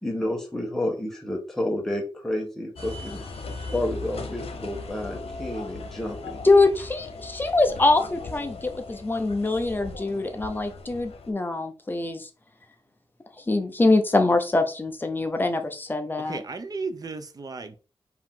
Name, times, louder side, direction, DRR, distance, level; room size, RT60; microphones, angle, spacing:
voice 1, 0.0-3.2 3.7-6.4, left 1 dB, 5° left, 1.1 m, -30 dB
sound 1, 2.7-11.3, left 3 dB, 90° left, 0.8 m, -38 dB
voice 2, 6.4-12.3 13.4-16.4, left 2 dB, 20° left, 0.6 m, -23 dB
voice 3, 16.2-17.8, right 4 dB, 40° right, 0.6 m, -34 dB
4.8 x 2.8 x 3.7 m
wide cardioid pair, 155°, 10 cm